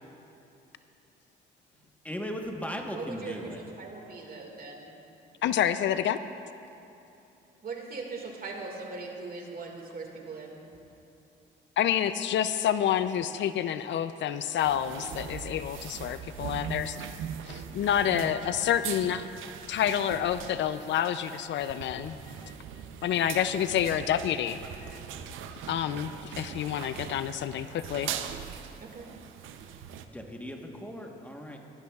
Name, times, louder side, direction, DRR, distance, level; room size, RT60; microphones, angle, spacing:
voice 1, 2.0-3.6 30.1-31.6, equal, 5° left, 2 dB, 1.2 m, -37 dB
voice 2, 2.9-4.9 7.6-10.6 28.8-29.1, right 4 dB, 50° right, 1 dB, 2.0 m, -40 dB
voice 3, 5.4-6.2 11.8-17.1 17.5-19.3 19.7-22.2 23.0-24.6 25.7-28.1, left 10 dB, 65° left, 12 dB, 0.4 m, -28 dB
sound 1, 14.6-30.0, right 8 dB, 85° right, 0.6 m, -41 dB
17.5 x 13.5 x 2.4 m, 2.9 s
cardioid pair, 90°, 20 cm